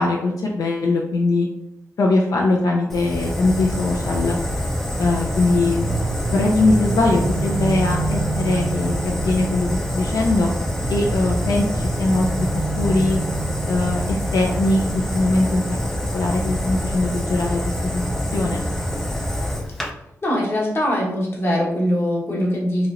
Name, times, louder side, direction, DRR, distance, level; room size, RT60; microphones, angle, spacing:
voice 1, 0.0-1.5 2.0-4.4 5.0-5.9 6.3-10.5 10.9-12.5 12.8-13.2 13.7-15.6 16.1-18.0 18.3-18.6, left 2 dB, 75° left, -1 dB, 0.4 m, -21 dB
Fire, 2.9-19.9, equal, 5° left, 0.4 m, -25 dB
sound 1, 5.7-18.5, right 3 dB, 65° right, 0.3 m, -31 dB
voice 2, 20.2-22.9, equal, 40° left, -3 dB, 1.0 m, -22 dB
3.0 x 2.7 x 2.4 m, 0.85 s
wide cardioid pair, 105°, 6 cm